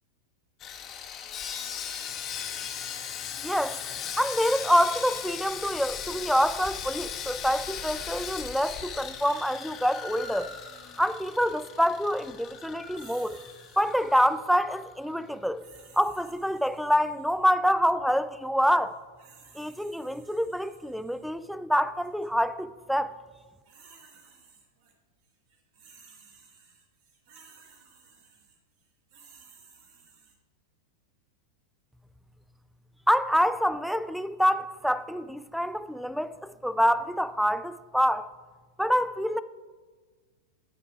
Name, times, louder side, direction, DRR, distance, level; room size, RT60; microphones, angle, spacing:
Sawing, 0.6-14.9 15.1-15.3 15.8-15.9, left 8 dB, 30° left, 0.8 m, -38 dB
voice 1, 3.4-3.9 4.2-10.6 11.0-13.4 13.8-15.6 15.9-19.0 19.5-23.2 33.1-38.3 38.8-39.4, equal, ahead, 0.3 m, -26 dB
sound 1, 12.9-14.5 15.6-17.4 18.9-21.3 22.0-22.3 23.3-24.9 25.2-30.4, right 5 dB, 50° right, 1.5 m, -56 dB
12.5 x 4.4 x 4.8 m
figure-of-eight pair, 90°, 0 cm